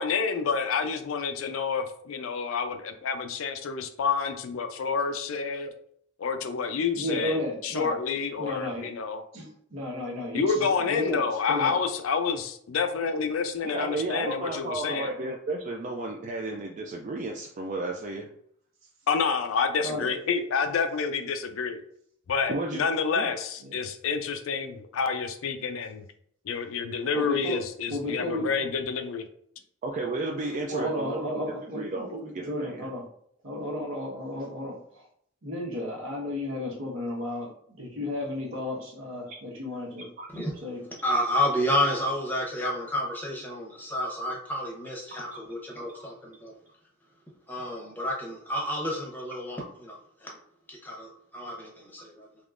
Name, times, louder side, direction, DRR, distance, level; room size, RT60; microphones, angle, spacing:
voice 1, 0.0-5.7 6.2-9.2 10.3-15.1 19.1-21.8 22.3-26.0 26.5-29.3 30.5-31.5, left 5 dB, 80° left, 8 dB, 0.4 m, -29 dB
voice 2, 7.0-8.0 8.4-8.9 9.3-11.2 11.5-11.8 19.8-20.0 23.6-23.7 27.1-27.6 27.9-28.4 30.7-33.0 33.4-35.1 35.4-37.5 37.8-40.1 40.6-40.8, left 1 dB, 75° right, -2 dB, 1.1 m, -33 dB
voice 3, 13.6-18.3 22.5-22.9 23.1-23.3 29.8-31.2 31.8-32.1 32.3-32.9 39.3-39.4 40.2-40.3 45.3-45.4 45.9-46.0, right 2 dB, 40° right, 1 dB, 0.3 m, -33 dB
voice 4, 41.0-46.5 47.5-50.4 50.7-52.3, left 1 dB, 10° left, -3 dB, 0.8 m, -30 dB
3.5 x 3.0 x 2.4 m, 0.66 s
head